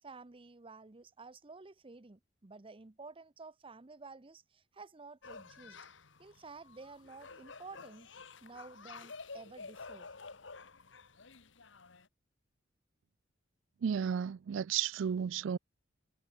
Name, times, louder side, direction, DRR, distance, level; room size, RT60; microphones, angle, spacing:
voice 1, 0.0-5.8 6.2-8.1 8.4-10.1, right 3 dB, 30° right, 0.8 m, -52 dB
sound 1, 5.2-12.1, left 4 dB, 70° left, 1.7 m, -51 dB
voice 2, 13.8-15.6, right 8 dB, 75° right, 0.4 m, -33 dB
head